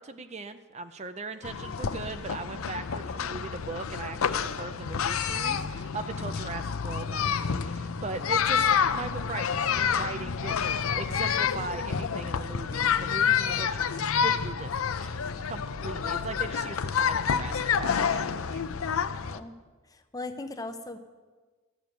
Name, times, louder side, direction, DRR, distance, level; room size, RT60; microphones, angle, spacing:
voice 1, 0.0-15.1 15.4-19.0, right 4 dB, 30° right, 10 dB, 0.5 m, -39 dB
sound 1, 1.4-19.4, left 7 dB, 80° left, 0.6 m, -28 dB
voice 2, 19.8-21.0, left 2 dB, 15° left, 8 dB, 0.7 m, -38 dB
14.0 x 6.8 x 9.2 m, 1.4 s
head